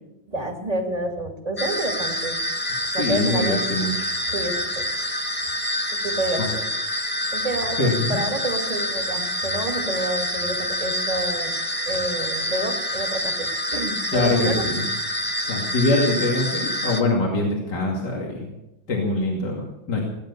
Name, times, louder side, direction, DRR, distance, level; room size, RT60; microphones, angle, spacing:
voice 1, 0.3-2.4 2.9-3.7 4.3-4.9 5.9-6.6 7.3-11.5 11.9-14.7, right 1 dB, 20° right, 2 dB, 2.6 m, -29 dB
sound 1, 1.6-17.0, left 1 dB, 5° left, 1.2 m, -27 dB
voice 2, 3.0-3.9 6.4-6.5 7.8-8.2 14.1-14.8 15.5-18.5 18.9-20.0, left 2 dB, 55° left, -2 dB, 3.1 m, -23 dB
18.5 x 10.5 x 7.0 m, 0.93 s
omnidirectional pair, 2.1 m